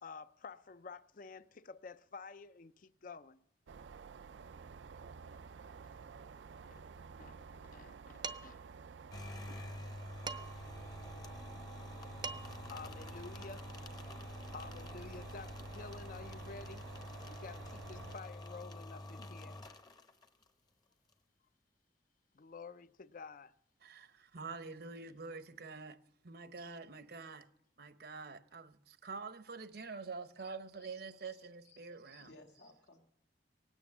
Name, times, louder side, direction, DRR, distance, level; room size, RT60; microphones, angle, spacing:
voice 1, 0.0-3.4 5.3-5.6 5.8-6.0 6.6-8.6 12.7-13.7 14.5-16.9 17.3-19.6 22.3-23.5, left 4 dB, 45° left, 0.5 m, -51 dB
sound 1, 3.7-18.2, right 5 dB, 85° right, 0.5 m, -52 dB
Dishes pots and pans, 8.2-8.7 10.3-10.7 11.9-12.0 12.2-12.7, right 5 dB, 25° right, 0.5 m, -43 dB
sound 2, 9.1-20.5, left 1 dB, 20° left, 0.8 m, -48 dB
voice 2, 23.8-26.0 26.2-27.5 27.8-32.3, right 4 dB, 60° right, 0.8 m, -46 dB
voice 3, 30.7-33.0, left 2 dB, 85° left, 2.0 m, -62 dB
18.0 x 9.0 x 7.2 m
head